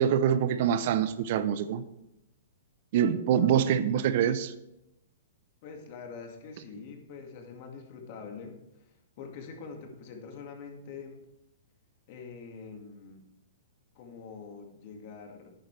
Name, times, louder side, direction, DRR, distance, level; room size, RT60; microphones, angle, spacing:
voice 1, 0.0-1.8 2.9-4.5, right 9 dB, 55° right, 13 dB, 0.6 m, -25 dB
voice 2, 5.6-11.2 12.1-13.2 13.9-15.5, left 5 dB, 45° left, 3 dB, 2.0 m, -45 dB
12.0 x 8.9 x 3.3 m, 0.87 s
hypercardioid pair, 145°, 0 cm